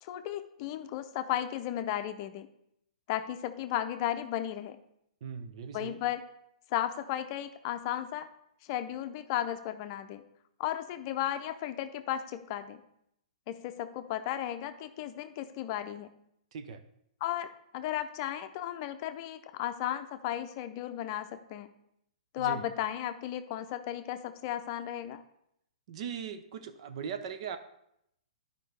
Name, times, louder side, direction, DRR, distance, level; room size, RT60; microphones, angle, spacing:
voice 1, 0.0-2.5 3.1-4.8 5.7-6.2 6.7-8.3 8.7-10.2 10.6-12.8 13.5-16.1 17.2-21.7 22.3-25.2, left 12 dB, 40° left, 9 dB, 0.6 m, -34 dB
voice 2, 5.2-6.0 16.5-16.8 22.4-22.6 25.9-27.6, right 7 dB, 55° right, 9 dB, 0.7 m, -39 dB
10.5 x 5.1 x 3.3 m, 0.76 s
hypercardioid pair, 120°, 4 cm